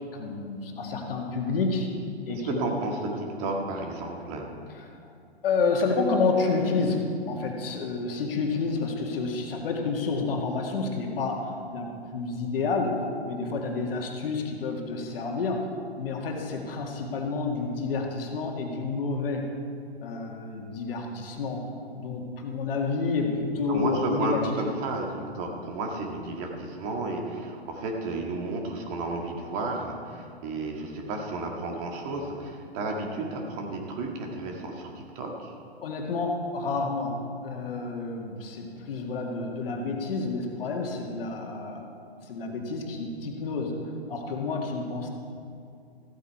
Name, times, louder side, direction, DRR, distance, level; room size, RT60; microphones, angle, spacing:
voice 1, 0.1-1.9 2.3-2.7 4.8-4.9 5.4-7.0 7.3-13.0 13.2-15.7 16.0-19.5 20.0-21.7 21.9-24.6 35.8-41.9 42.3-43.8 44.1-45.1, left 4 dB, 60° left, 1 dB, 2.0 m, -29 dB
voice 2, 2.3-4.5 23.7-35.5, right 2 dB, 35° right, 1 dB, 1.7 m, -32 dB
14.5 x 8.4 x 4.6 m, 2.4 s
hypercardioid pair, 130°, 32 cm